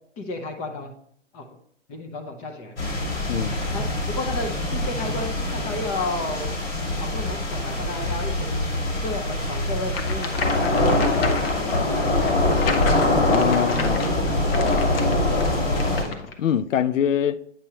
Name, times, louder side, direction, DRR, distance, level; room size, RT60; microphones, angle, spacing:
voice 1, 0.2-0.9 1.3-1.5 1.9-2.8 3.7-3.9 4.2-6.5 7.0-8.7 9.0-12.5, left 2 dB, 20° left, 0.7 m, -33 dB
sound 1, 2.8-16.0, left 2 dB, 70° left, 3.1 m, -23 dB
voice 2, 3.3-3.6 13.2-14.0 16.4-17.4, left 9 dB, 90° left, 0.5 m, -23 dB
sound 2, 9.9-16.3, left 5 dB, 50° left, 1.0 m, -33 dB
8.8 x 5.4 x 2.9 m
hypercardioid pair, 135°, 37 cm